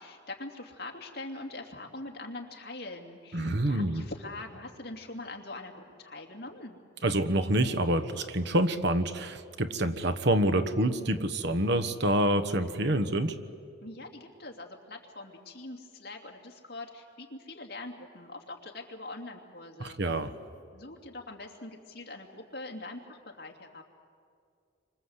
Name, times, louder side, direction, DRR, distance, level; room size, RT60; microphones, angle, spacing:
voice 1, 0.0-6.8 13.8-20.0 20.7-23.8, left 2 dB, 50° left, 2 dB, 2.8 m, -43 dB
voice 2, 3.3-4.0 7.0-13.3 19.8-20.3, right 1 dB, 55° right, 9 dB, 1.2 m, -27 dB
28.0 x 25.0 x 8.1 m, 2.3 s
head